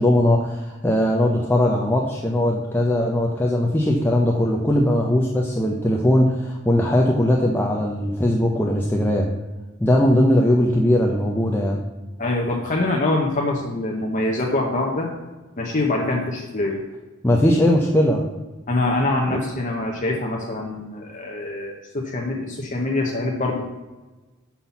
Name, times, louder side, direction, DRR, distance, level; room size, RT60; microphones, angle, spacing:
voice 1, 0.0-9.3 9.8-11.8 17.2-18.2 19.3-19.4, left 1 dB, 10° left, -1 dB, 0.6 m, -19 dB
voice 2, 12.2-15.1 15.6-16.8 18.7-23.6, left 2 dB, 35° left, -1 dB, 0.9 m, -24 dB
5.9 x 5.7 x 7.0 m, 1.2 s
head